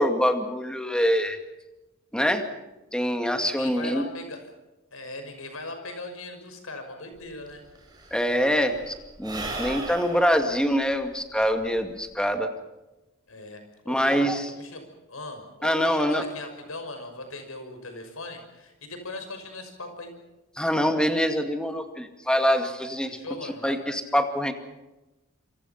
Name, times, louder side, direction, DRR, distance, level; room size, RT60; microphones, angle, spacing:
voice 1, 0.0-1.4 2.1-2.4 2.9-4.1 8.1-12.5 13.9-14.4 15.6-16.2 20.6-23.2 23.6-24.5, equal, 5° left, 6 dB, 2.2 m, -24 dB
voice 2, 3.4-4.4 4.9-7.6 13.3-20.1 23.0-23.8, left 2 dB, 85° left, 6 dB, 6.1 m, -39 dB
Sigh / Breathing, 7.2-7.3 7.5-12.2, right 2 dB, 20° right, 6.9 m, -38 dB
27.0 x 25.0 x 5.9 m, 1.0 s
head